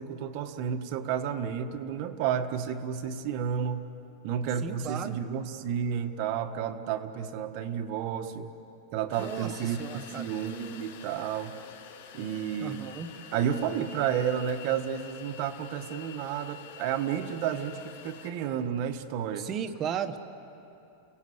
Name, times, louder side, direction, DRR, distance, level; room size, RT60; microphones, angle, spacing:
voice 1, 0.0-3.9 4.2-8.5 8.9-11.6 12.1-12.8 13.3-19.5, right 8 dB, 45° right, 6 dB, 1.4 m, -31 dB
voice 2, 4.6-5.2 9.2-10.3 12.6-13.1 19.4-20.2, right 8 dB, 30° right, 8 dB, 1.2 m, -35 dB
sound 1, 9.1-18.3, left 8 dB, 65° left, 3.8 m, -47 dB
30.0 x 17.5 x 8.0 m, 2.8 s
supercardioid pair, 150°, 0 cm